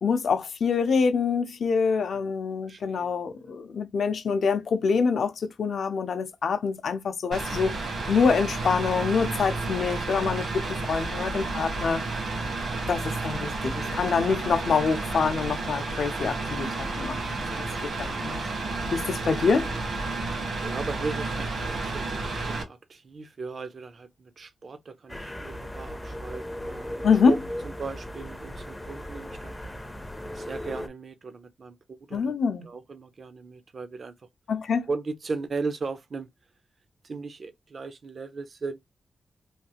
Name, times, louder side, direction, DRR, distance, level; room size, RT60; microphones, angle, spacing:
voice 1, 0.0-7.8 8.1-12.0 12.9-17.7 18.0-18.4 18.9-19.7 27.0-27.3 32.1-32.7 34.5-34.9, left 5 dB, 70° left, 0.5 m, -25 dB
voice 2, 2.7-3.5 18.6-18.9 20.6-27.4 27.6-29.6 30.3-32.3 32.6-34.2 34.9-36.3 37.0-38.8, right 4 dB, 50° right, 0.4 m, -37 dB
Mechanical fan, 7.3-22.6, right 3 dB, 75° right, 1.3 m, -31 dB
sound 1, 25.1-30.9, equal, 10° left, 0.4 m, -37 dB
3.2 x 2.4 x 2.8 m
wide cardioid pair, 120°, 0 cm